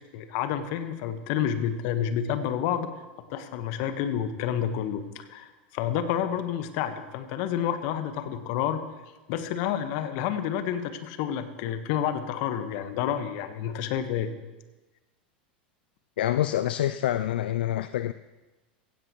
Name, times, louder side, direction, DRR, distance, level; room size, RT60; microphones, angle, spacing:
voice 1, 0.1-2.9 3.3-8.8 9.3-14.3, left 9 dB, 60° left, 9 dB, 1.3 m, -29 dB
voice 2, 16.2-18.1, left 12 dB, 75° left, 13 dB, 0.4 m, -26 dB
16.0 x 16.0 x 3.1 m, 1.1 s
hypercardioid pair, 95°, 5 cm